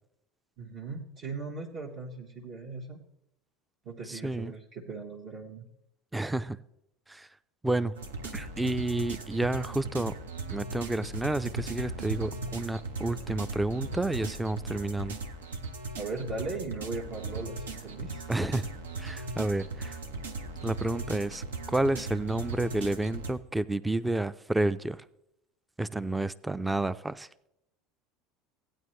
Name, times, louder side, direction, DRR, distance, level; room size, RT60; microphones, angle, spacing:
voice 1, 0.6-3.0 3.8-5.7 16.0-18.3, right 3 dB, 50° right, -4 dB, 1.3 m, -38 dB
voice 2, 4.1-4.5 6.1-6.6 7.1-7.3 7.6-7.9 8.3-10.2 10.5-15.2 18.3-18.7 19.0-20.0 20.6-25.0 25.8-27.3, right 2 dB, 10° right, 15 dB, 0.4 m, -30 dB
sound 1, 8.0-23.3, right 3 dB, 80° right, 0.7 m, -38 dB
15.5 x 9.1 x 3.2 m, 0.83 s
hypercardioid pair, 75°, 0 cm